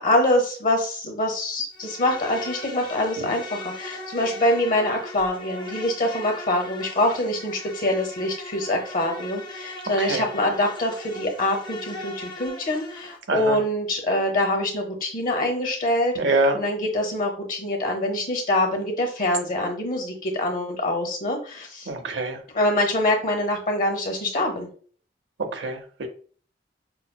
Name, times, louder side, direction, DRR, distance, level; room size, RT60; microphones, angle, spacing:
voice 1, 0.0-16.1 16.6-21.9 22.5-24.7, left 1 dB, 50° left, 2 dB, 0.9 m, -24 dB
Insect, 1.7-13.2, left 1 dB, 25° left, 0.6 m, -39 dB
voice 2, 13.3-13.6 16.2-16.6 21.9-22.4 25.4-26.1, right 2 dB, 90° right, 5 dB, 0.6 m, -25 dB
5.8 x 2.0 x 2.2 m, 0.44 s
head